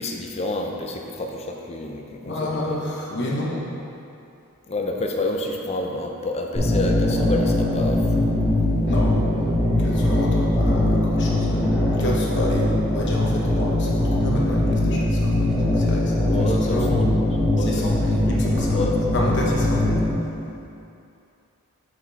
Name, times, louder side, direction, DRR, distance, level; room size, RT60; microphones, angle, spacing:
voice 1, 0.0-2.8 4.7-8.3 16.2-17.1 17.6-17.8 18.2-18.4 18.7-19.0, left 2 dB, 30° left, 2 dB, 0.5 m, -29 dB
voice 2, 2.2-3.7 8.9-9.5 9.8-17.0 17.6-17.9 18.3-18.8 19.1-20.0, left 1 dB, 55° left, -4 dB, 1.0 m, -30 dB
sound 1, 6.5-20.1, left 1 dB, 10° left, 1.3 m, -21 dB
5.7 x 5.1 x 4.0 m, 2.7 s
head